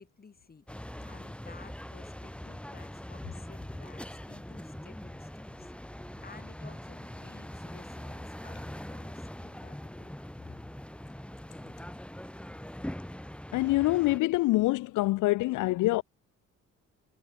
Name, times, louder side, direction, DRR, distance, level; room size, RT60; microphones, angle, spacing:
voice 1, 0.0-5.7 6.2-10.2 10.5-10.6, left 5 dB, 30° left, 3.3 m, -54 dB
sound 1, 0.7-14.2, left 1 dB, 5° left, 3.5 m, -42 dB
voice 2, 13.5-16.0, left 19 dB, 80° left, 0.5 m, -25 dB
cardioid pair, 90°, 30 cm